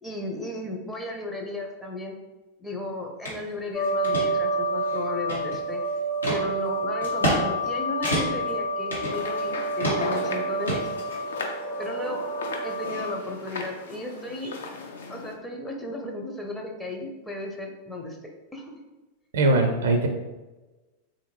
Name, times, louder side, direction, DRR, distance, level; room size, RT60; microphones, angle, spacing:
voice 1, 0.0-2.2 2.6-5.8 6.3-10.9 11.8-12.2 12.6-14.5 15.1-18.2 18.5-18.7, left 2 dB, 10° left, 0 dB, 0.5 m, -35 dB
sound 1, 3.2-3.4 3.8-4.2 4.8-5.7 6.2-6.4 7.0-7.4 7.7-7.8 8.0-8.5 8.9-9.5 9.8-10.2 10.7-11.5, right 1 dB, 85° left, 1.1 m, -28 dB
sound 2, 3.7-13.2, right 1 dB, 40° left, 0.9 m, -29 dB
sound 3, 9.0-15.3, left 4 dB, 65° left, 0.5 m, -37 dB
voice 2, 19.3-20.1, right 2 dB, 65° right, 4 dB, 0.4 m, -21 dB
3.5 x 2.6 x 2.9 m, 1.1 s
figure-of-eight pair, 90°, 0 cm